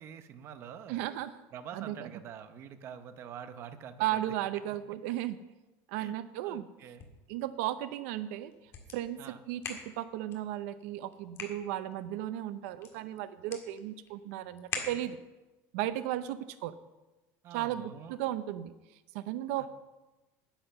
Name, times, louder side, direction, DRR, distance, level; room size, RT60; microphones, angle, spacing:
voice 1, 0.0-1.0 1.5-4.2 6.0-6.1 6.4-7.0 9.2-9.4 17.4-18.1 19.6-19.7, right 8 dB, 35° right, 9 dB, 0.8 m, -46 dB
voice 2, 0.9-1.3 1.7-2.1 4.0-5.4 5.9-6.7 7.3-8.5 8.9-9.2 9.5-15.2 15.7-16.7 17.5-18.7 19.1-19.7, right 13 dB, 85° right, 12 dB, 0.6 m, -35 dB
sound 1, 6.7-15.4, left 6 dB, 35° left, 2.1 m, -46 dB
10.0 x 9.8 x 6.8 m, 1.1 s
cardioid pair, 170°, 7 cm